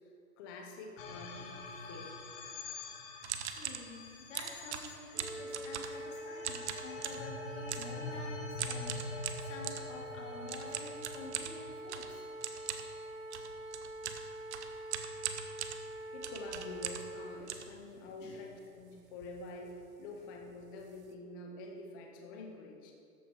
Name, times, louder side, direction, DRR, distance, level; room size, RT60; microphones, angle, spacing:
voice 1, 0.4-2.1 16.1-22.9, left 2 dB, 15° left, 2 dB, 0.6 m, -47 dB
sound 1, 1.0-13.4, left 3 dB, 35° left, 1.2 m, -46 dB
sound 2, 3.2-3.9 4.4-6.1 6.4-7.3 7.7-8.0 8.6-9.9 10.5-17.2 17.5-18.3 18.8-18.9 19.1-19.4 19.6-19.8 20.4-20.5 20.8-21.1, right 9 dB, 45° right, 0.9 m, -41 dB
voice 2, 3.4-12.2 17.9-18.4, left 2 dB, 50° left, -2 dB, 3.0 m, -49 dB
sound 3, 5.1-17.3, right 1 dB, 10° right, 1.4 m, -45 dB
13.5 x 9.3 x 4.5 m, 2.3 s
hypercardioid pair, 155°, 48 cm